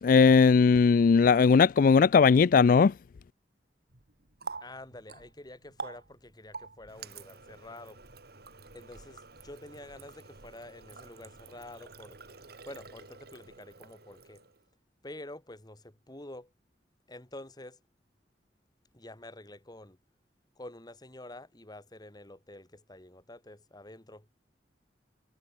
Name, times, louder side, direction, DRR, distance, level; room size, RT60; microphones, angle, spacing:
voice 1, 0.0-2.9, left 5 dB, 50° left, 0.3 m, -19 dB
Water tap faucet, 3.9-14.7, right 4 dB, 60° right, 2.9 m, -48 dB
voice 2, 4.6-8.0 8.7-12.2 12.6-14.4 15.0-16.5 17.1-17.8 18.9-20.0 20.6-24.3, left 1 dB, 25° left, 2.7 m, -48 dB
head